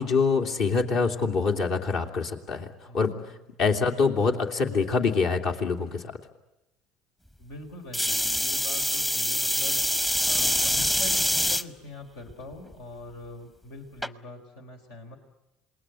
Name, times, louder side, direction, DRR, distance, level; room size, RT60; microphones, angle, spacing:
voice 1, 0.0-2.7 2.9-3.1 3.6-6.0, left 4 dB, 60° left, 3 dB, 3.0 m, -25 dB
voice 2, 2.9-3.4 7.4-9.8 10.2-15.2, left 2 dB, 80° left, 4 dB, 3.8 m, -43 dB
sound 1, 7.9-11.6 12.3-12.7 14.0-14.1, equal, 10° left, 0.9 m, -25 dB
27.5 x 20.5 x 10.0 m, 0.94 s
supercardioid pair, 85°, 0 cm